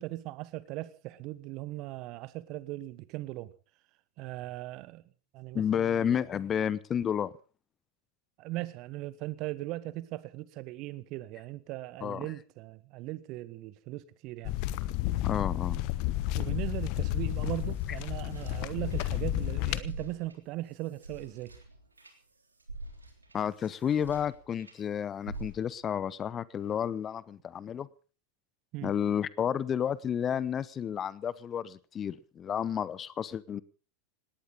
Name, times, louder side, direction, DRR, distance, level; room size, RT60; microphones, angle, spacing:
voice 1, 0.0-3.5 4.2-5.0 5.3-6.2 8.4-14.5 16.4-21.5 28.7-28.9, right 17 dB, 45° right, 1.3 m, -39 dB
voice 2, 5.5-7.3 12.0-12.3 15.2-15.9 23.3-27.9 28.8-33.6, left 8 dB, 25° left, 0.8 m, -31 dB
sound 1, 14.4-19.8, left 15 dB, 45° left, 1.1 m, -31 dB
sound 2, 17.2-19.5 19.8-24.8 25.2-25.9, right 2 dB, 85° right, 3.4 m, -47 dB
19.0 x 18.0 x 3.9 m
figure-of-eight pair, 85°, 0 cm